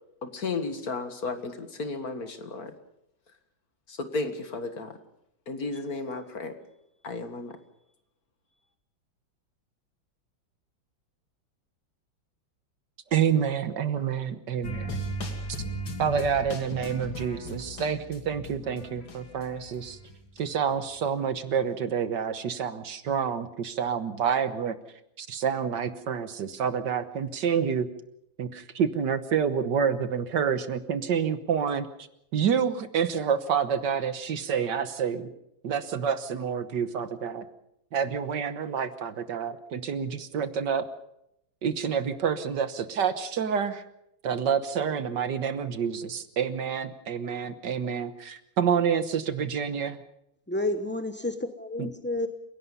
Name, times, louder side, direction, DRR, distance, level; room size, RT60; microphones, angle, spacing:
voice 1, 0.2-2.7 3.9-5.0 5.5-6.5 7.0-7.6, left 3 dB, 50° left, 7 dB, 2.2 m, -33 dB
voice 2, 13.1-15.0 16.0-20.0 20.4-24.8 25.2-27.9 28.4-31.9 32.3-35.3 35.6-37.4 37.9-40.9 41.6-43.8 44.2-50.0 51.8-51.9, right 7 dB, 65° right, 11 dB, 1.7 m, -28 dB
sound 1, 14.6-20.4 20.7-20.8, right 1 dB, 80° left, 3.5 m, -37 dB
voice 3, 50.5-52.3, left 2 dB, 15° left, 7 dB, 0.4 m, -30 dB
29.5 x 17.0 x 5.5 m, 0.79 s
omnidirectional pair, 2.1 m